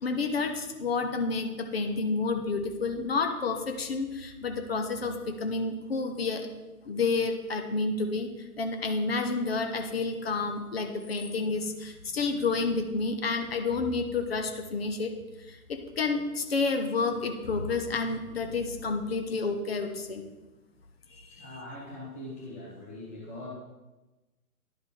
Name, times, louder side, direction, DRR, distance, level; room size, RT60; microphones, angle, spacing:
voice 1, 0.0-6.5 6.8-8.3 8.6-15.1 15.5-20.2 21.4-21.5, left 4 dB, 45° left, 6 dB, 0.9 m, -30 dB
voice 2, 21.3-23.5, left 1 dB, 10° left, -7 dB, 0.5 m, -42 dB
11.0 x 4.9 x 3.6 m, 1.1 s
figure-of-eight pair, 135°, 43 cm